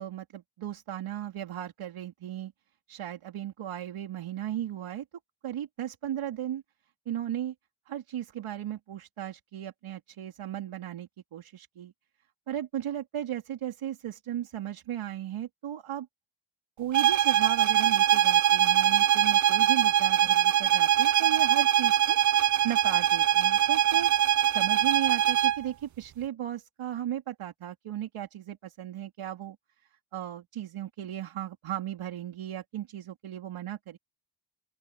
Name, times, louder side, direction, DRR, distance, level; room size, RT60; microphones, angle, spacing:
voice 1, 0.0-2.5 2.9-5.0 5.4-6.6 7.1-7.5 7.9-11.9 12.5-16.1 16.8-22.2 22.6-24.1 24.5-29.6 30.1-34.0, right 11 dB, 70° right, 3.5 m, -36 dB
sound 1, 16.9-25.6, right 11 dB, 40° right, 0.4 m, -23 dB
open air
cardioid pair, 100°, 50 cm